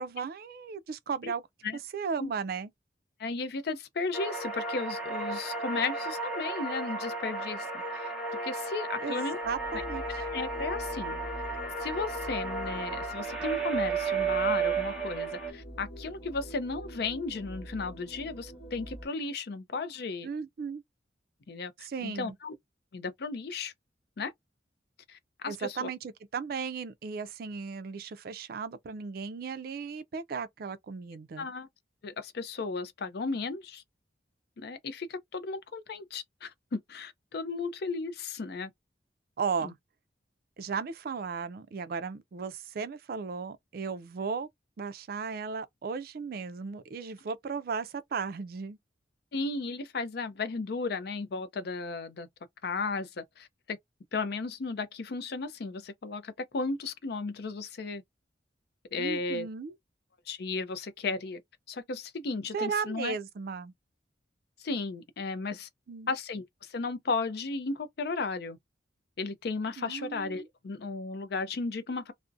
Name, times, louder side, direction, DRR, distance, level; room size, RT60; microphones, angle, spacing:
voice 1, 0.0-1.4 1.9-2.7 9.0-10.0 20.2-20.8 21.8-22.3 25.5-31.5 39.4-39.8 40.6-44.5 44.8-48.8 59.0-59.7 62.5-63.7 65.9-66.1 69.8-70.5, right 5 dB, 55° right, 0.4 m, -35 dB
voice 2, 3.2-7.7 7.9-8.1 8.4-9.4 9.7-9.8 10.2-11.2 11.8-20.3 21.5-22.5 22.9-23.7 24.2-24.3 25.1-25.9 31.4-31.7 32.0-33.8 34.6-38.7 39.6-39.7 49.3-52.3 52.6-53.8 54.1-58.0 58.9-59.5 60.3-61.4 61.7-63.2 64.6-65.7 66.1-68.6 69.2-72.1, left 4 dB, 60° left, 0.5 m, -35 dB
sound 1, 4.1-15.5, right 4 dB, ahead, 0.8 m, -33 dB
sound 2, 9.4-19.1, equal, 35° left, 1.0 m, -45 dB
2.5 x 2.0 x 2.5 m
head